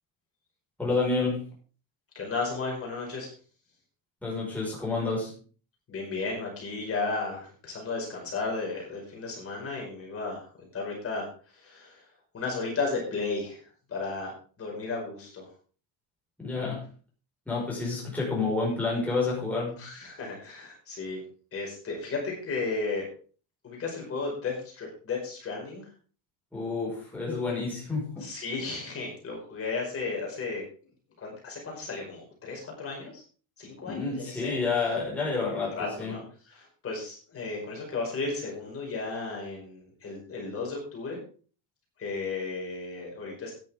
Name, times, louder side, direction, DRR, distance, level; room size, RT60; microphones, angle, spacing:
voice 1, 0.8-1.5 4.2-5.4 16.4-16.9 17.5-19.8 26.5-28.3 33.8-36.2, left 3 dB, 5° left, 5.2 m, -29 dB
voice 2, 2.2-3.3 5.9-12.0 12.3-13.6 13.9-15.5 19.8-21.2 21.5-23.0 23.6-25.8 28.2-30.6 31.2-33.2 33.6-34.6 35.8-36.2 36.5-41.2 42.0-43.5, left 3 dB, 30° left, 5.2 m, -34 dB
13.5 x 10.5 x 3.7 m
cardioid pair, 155°, 43 cm